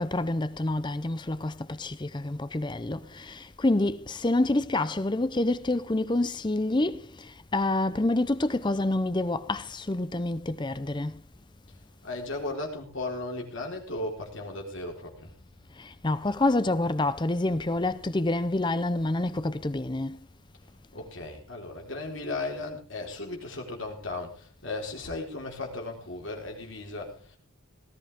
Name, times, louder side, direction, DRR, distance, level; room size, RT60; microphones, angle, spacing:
voice 1, 0.0-11.2 15.7-20.3, left 2 dB, 20° left, 0.6 m, -27 dB
voice 2, 12.0-15.3 20.9-27.4, left 2 dB, 60° left, 4.2 m, -36 dB
18.5 x 13.5 x 3.6 m
head